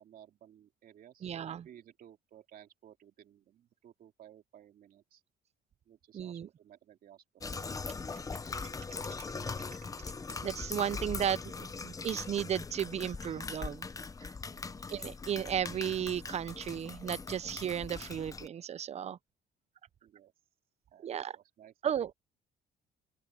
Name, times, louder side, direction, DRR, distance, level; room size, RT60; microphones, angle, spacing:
voice 1, 0.0-5.2 5.9-8.0 10.6-11.1 11.9-12.1 13.0-13.1 14.4-14.9 16.1-16.7 20.0-20.3 20.9-21.7, right 10 dB, 60° right, 2.6 m, -58 dB
voice 2, 1.2-1.7 6.1-6.5 10.4-13.8 14.9-19.2 21.0-21.4 21.8-22.1, right 9 dB, 40° right, 0.6 m, -34 dB
sound 1, 7.4-18.5, left 4 dB, 20° left, 0.9 m, -41 dB
open air
cardioid pair, 110°, 17 cm